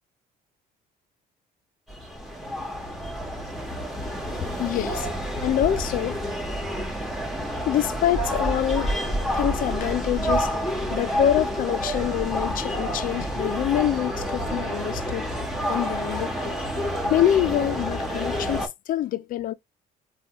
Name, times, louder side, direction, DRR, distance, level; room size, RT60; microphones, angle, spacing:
sound 1, 1.9-18.7, equal, ahead, 1.0 m, -29 dB
voice 1, 4.0-5.1 5.4-6.2 7.7-9.0 9.3-10.5 10.9-15.3 15.6-16.6 17.1-19.5, left 12 dB, 55° left, 0.4 m, -26 dB
3.2 x 2.3 x 2.9 m
cardioid pair, 110°, 17 cm